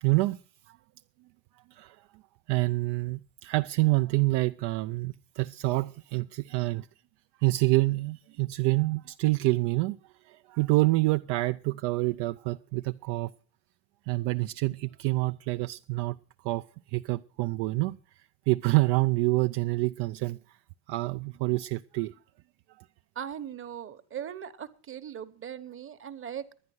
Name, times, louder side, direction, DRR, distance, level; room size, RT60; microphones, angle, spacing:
voice 1, 0.0-0.4 0.7-0.8 1.7-2.1 2.5-6.9 7.4-10.0 10.2-13.3 14.1-16.2 16.4-18.0 18.5-20.6 20.9-22.1, right 21 dB, 80° right, 0.5 m, -27 dB
voice 2, 23.2-26.4, right 9 dB, 30° right, 0.9 m, -39 dB
11.0 x 9.8 x 7.8 m
cardioid pair, 125°, 40 cm